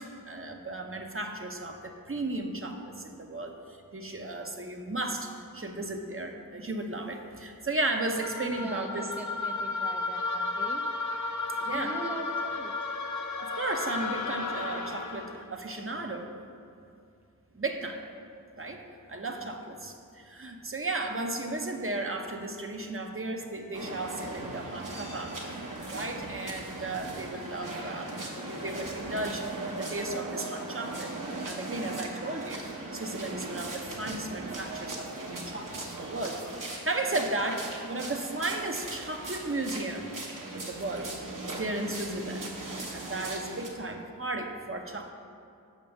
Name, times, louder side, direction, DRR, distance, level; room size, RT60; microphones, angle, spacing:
voice 1, 0.0-3.5 3.9-9.1 11.6-11.9 13.4-16.3 17.5-18.0 18.6-18.8 19.1-25.6 25.9-31.1 31.4-32.6 32.9-40.1 40.5-41.1 41.4-42.5 42.9-45.1, right 2 dB, 40° right, 3 dB, 0.8 m, -35 dB
sound 1, 8.2-15.5, left 3 dB, 55° left, 0.6 m, -33 dB
voice 2, 8.5-10.8 11.7-12.7 19.4-19.5, right 2 dB, 5° right, 3 dB, 0.4 m, -42 dB
sound 2, 23.7-43.7, right 2 dB, 60° right, 1.1 m, -38 dB
6.0 x 5.3 x 6.1 m, 2.5 s
wide cardioid pair, 45°, 35 cm